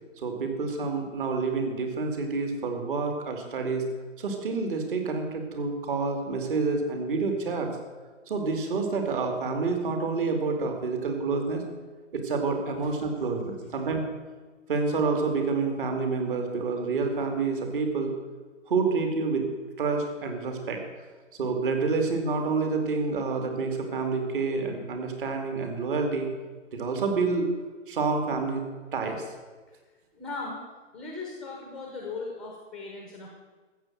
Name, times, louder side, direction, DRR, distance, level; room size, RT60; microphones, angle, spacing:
voice 1, 0.2-3.8 4.2-7.7 8.3-11.6 12.1-14.1 14.7-18.1 18.7-19.5 19.8-20.8 21.4-26.3 26.7-27.5 27.9-28.6 28.9-29.2, right 4 dB, 45° right, 4 dB, 2.5 m, -28 dB
voice 2, 30.1-30.6 30.9-33.3, left 3 dB, ahead, 0 dB, 0.8 m, -38 dB
13.5 x 7.8 x 7.7 m, 1.3 s
hypercardioid pair, 150°, 38 cm